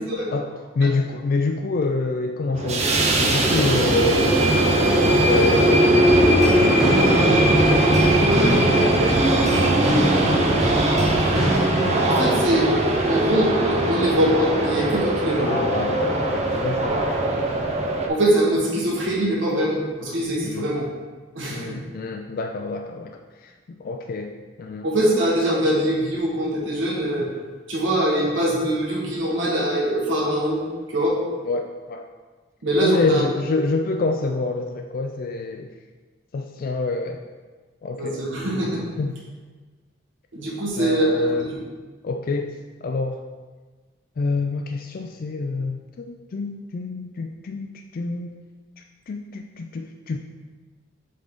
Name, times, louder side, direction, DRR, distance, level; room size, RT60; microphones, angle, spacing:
voice 1, 0.7-6.6 7.0-9.2 9.7-10.7 15.4-17.1 17.5-17.6 20.4-20.7 21.5-24.3 24.6-24.9 31.4-32.0 32.8-35.7 36.3-37.2 37.8-38.2 39.0-39.1 40.8-41.5 42.0-42.5 42.8-43.2 44.2-48.3 48.8-50.2, left 3 dB, 50° left, 4 dB, 0.3 m, -27 dB
sound 1, 2.5-18.1, right 1 dB, 35° right, 0.7 m, -19 dB
sound 2, 6.0-12.1, equal, ahead, 1.5 m, -27 dB
voice 2, 12.0-12.7 13.0-15.5 18.1-20.8 21.3-21.8 24.8-27.3 27.7-30.6 30.9-31.2 32.6-33.2 38.0-38.8 40.3-41.6, right 1 dB, 85° right, -4 dB, 1.6 m, -23 dB
7.5 x 3.9 x 3.6 m, 1.3 s
head